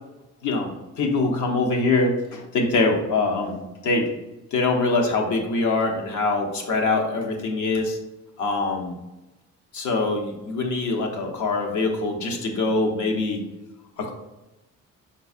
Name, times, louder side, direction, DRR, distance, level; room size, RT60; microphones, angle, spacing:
voice 1, 1.0-3.6 3.8-4.1 4.5-8.0 8.4-8.9 9.7-13.4 14.0-14.1, left 3 dB, 75° left, 2 dB, 0.9 m, -23 dB
4.3 x 3.9 x 2.4 m, 1.0 s
cardioid pair, 90°, 30 cm